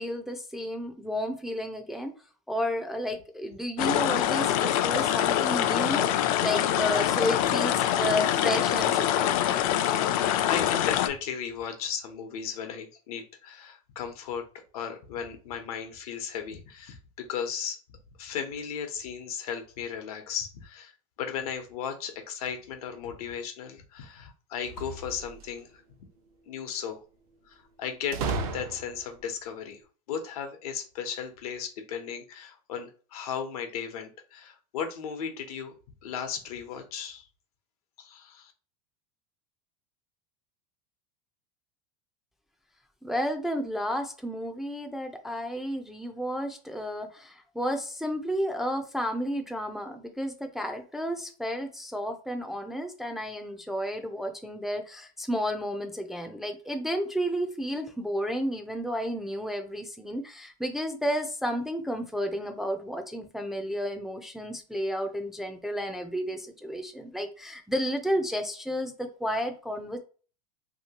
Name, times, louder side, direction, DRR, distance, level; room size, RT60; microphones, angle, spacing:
voice 1, 0.0-2.1 2.5-6.1 6.4-9.6 43.0-70.0, equal, ahead, 4 dB, 0.3 m, -32 dB
sound 1, 3.8-11.1, left 11 dB, 65° left, 0.4 m, -25 dB
voice 2, 9.8-14.5 14.7-17.8 18.2-20.9 21.2-25.8 26.5-27.0 27.5-28.2 28.5-29.8 30.1-35.7 36.0-37.3 38.0-38.5, left 7 dB, 85° left, 6 dB, 0.9 m, -36 dB
sound 2, 24.6-25.7 28.1-29.2, right 3 dB, 75° right, 0.7 m, -34 dB
2.9 x 2.8 x 2.8 m, 0.38 s
supercardioid pair, 130°, 19 cm